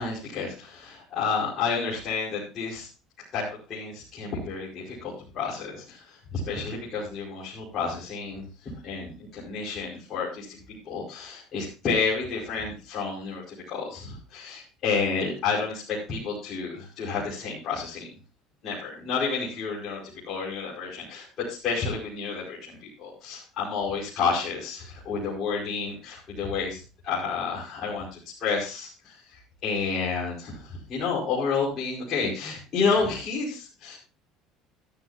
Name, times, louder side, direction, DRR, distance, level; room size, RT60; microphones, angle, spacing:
voice 1, 0.0-2.9 3.3-18.1 18.6-34.0, left 5 dB, 45° left, -7 dB, 5.2 m, -30 dB
12.5 x 12.0 x 2.7 m, 0.33 s
supercardioid pair, 110°, 0 cm